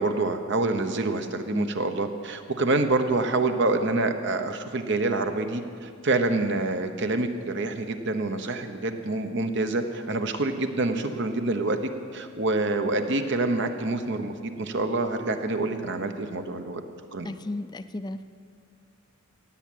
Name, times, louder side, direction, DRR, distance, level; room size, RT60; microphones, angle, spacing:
voice 1, 0.0-11.8 12.1-16.8 17.1-17.3, right 2 dB, 60° right, 7 dB, 0.9 m, -27 dB
voice 2, 17.2-18.2, left 2 dB, 20° left, 11 dB, 0.4 m, -34 dB
17.0 x 7.4 x 8.5 m, 2.3 s
head